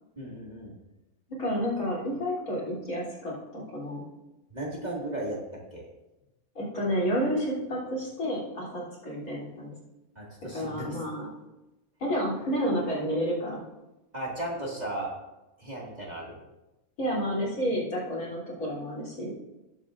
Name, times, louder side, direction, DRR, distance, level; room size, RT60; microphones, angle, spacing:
voice 1, 0.2-0.7 4.5-5.4 5.7-5.9 10.2-11.0 14.1-15.1 15.6-16.4, right 1 dB, 30° right, -4 dB, 2.1 m, -35 dB
voice 2, 1.4-4.0 6.6-9.7 10.5-11.2 12.0-13.6 17.0-19.3, equal, 70° left, -6 dB, 3.8 m, -30 dB
19.0 x 7.3 x 2.5 m, 0.99 s
omnidirectional pair, 1.6 m